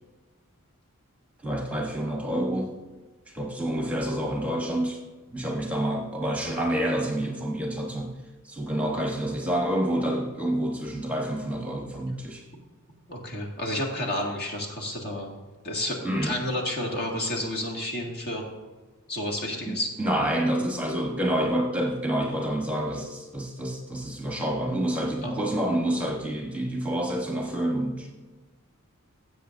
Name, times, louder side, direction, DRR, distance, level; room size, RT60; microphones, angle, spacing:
voice 1, 1.4-2.7 3.3-5.0 5.3-8.1 8.4-12.4 16.0-16.4 19.7-28.1, right 1 dB, 5° right, 1 dB, 1.1 m, -28 dB
voice 2, 13.1-15.3 15.6-18.5 19.1-19.9 25.2-25.3, left 1 dB, 45° left, 0 dB, 1.9 m, -30 dB
16.5 x 7.8 x 2.6 m, 1.3 s
head